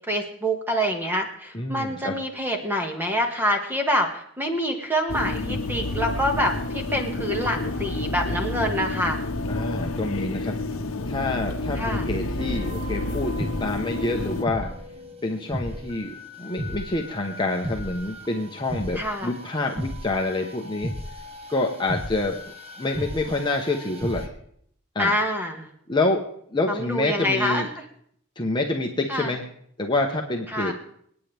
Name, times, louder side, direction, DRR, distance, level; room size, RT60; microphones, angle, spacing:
voice 1, 0.1-9.2 11.8-12.1 19.0-19.3 25.0-25.7 26.7-27.6 29.1-29.3 30.5-30.7, equal, 10° right, 3 dB, 1.7 m, -26 dB
voice 2, 1.5-2.2 9.5-10.6 11.1-14.7 15.2-20.9 21.5-22.4 22.8-24.3 24.9-25.1 25.9-26.2 26.5-27.7 28.4-29.5 29.8-30.7, left 2 dB, 20° left, 1 dB, 1.0 m, -27 dB
sound 1, 5.1-14.5, left 2 dB, 65° left, 1.0 m, -29 dB
sound 2, 12.4-24.3, equal, 30° right, 1.5 m, -36 dB
27.5 x 9.3 x 3.5 m, 0.67 s
head